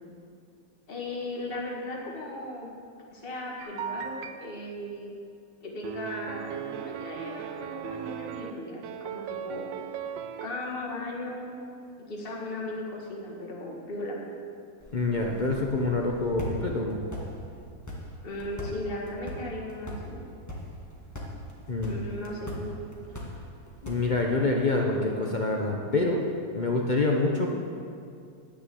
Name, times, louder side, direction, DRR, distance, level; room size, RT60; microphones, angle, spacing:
voice 1, 0.9-2.7 3.1-5.1 5.6-9.8 10.4-11.5 12.1-14.2 18.2-20.2 21.9-22.7, left 1 dB, 30° left, -2 dB, 1.8 m, -37 dB
sound 1, 3.6-4.5 5.8-8.5 8.8-10.5, right 8 dB, 75° right, 1.3 m, -37 dB
sound 2, 14.8-24.4, equal, 10° left, 1.4 m, -41 dB
voice 2, 14.9-17.0 21.7-22.0 23.8-26.2 26.5-27.5, left 2 dB, 60° left, 0 dB, 0.4 m, -26 dB
10.5 x 6.8 x 7.7 m, 2.4 s
omnidirectional pair, 2.1 m